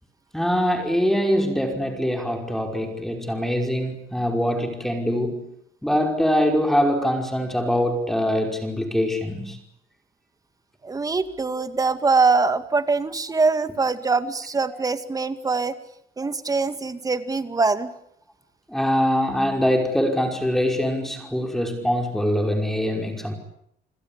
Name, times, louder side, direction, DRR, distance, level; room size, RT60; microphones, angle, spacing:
voice 1, 0.3-5.5 5.8-9.6 14.7-14.8 18.7-23.3, equal, ahead, 4 dB, 5.4 m, -23 dB
voice 2, 10.8-15.8 16.2-17.9, right 4 dB, 20° right, 10 dB, 2.2 m, -23 dB
30.0 x 21.0 x 8.7 m, 0.72 s
cardioid pair, 110°, 17 cm